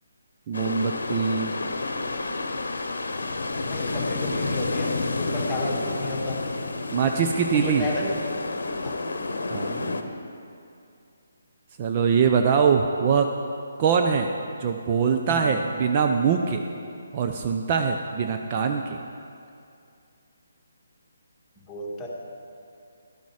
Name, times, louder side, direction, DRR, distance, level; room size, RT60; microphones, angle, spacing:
sound 1, 0.5-10.0, left 3 dB, 70° left, 0.8 m, -30 dB
voice 1, 0.5-1.6 6.9-7.9 9.5-10.0 11.8-13.3 13.8-14.3 14.6-16.6 17.1-19.0, right 6 dB, 35° right, 4 dB, 0.5 m, -23 dB
voice 2, 3.7-6.4 7.5-8.2 8.8-9.0 15.3-15.6 21.6-22.1, left 2 dB, 10° left, -4 dB, 1.8 m, -32 dB
12.0 x 9.2 x 4.9 m, 2.5 s
figure-of-eight pair, 145°, 0 cm